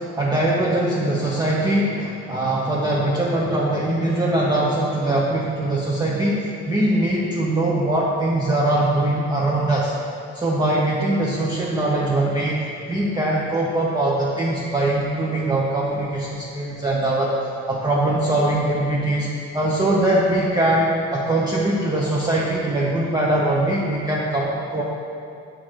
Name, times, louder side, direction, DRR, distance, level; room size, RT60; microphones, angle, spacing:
voice 1, 0.0-9.9 10.3-17.4 17.7-24.8, right 1 dB, 15° right, -5 dB, 0.6 m, -22 dB
5.9 x 3.2 x 5.0 m, 2.5 s
cardioid pair, 90°, 30 cm